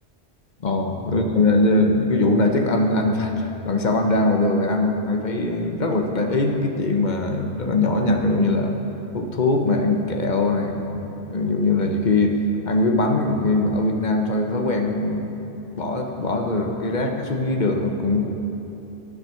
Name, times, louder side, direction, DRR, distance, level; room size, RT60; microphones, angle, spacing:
voice 1, 0.6-8.8 9.1-12.3 12.6-15.3 15.7-18.3, left 2 dB, 50° left, 4 dB, 0.9 m, -21 dB
10.5 x 6.2 x 6.4 m, 3.0 s
omnidirectional pair, 1.1 m